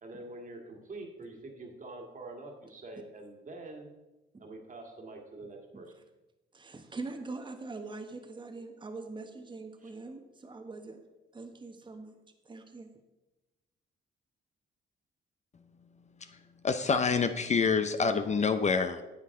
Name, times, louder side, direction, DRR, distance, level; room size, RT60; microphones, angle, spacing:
voice 1, 0.0-3.9 4.4-5.9 9.8-9.9, right 2 dB, 40° right, 2 dB, 1.9 m, -45 dB
voice 2, 5.4-5.8 6.5-11.0 11.3-12.1 12.4-12.9, right 3 dB, 25° right, 5 dB, 1.0 m, -43 dB
voice 3, 16.6-19.0, left 5 dB, 35° left, 9 dB, 0.5 m, -27 dB
9.9 x 7.5 x 3.7 m, 1.1 s
cardioid pair, 90°, 20 cm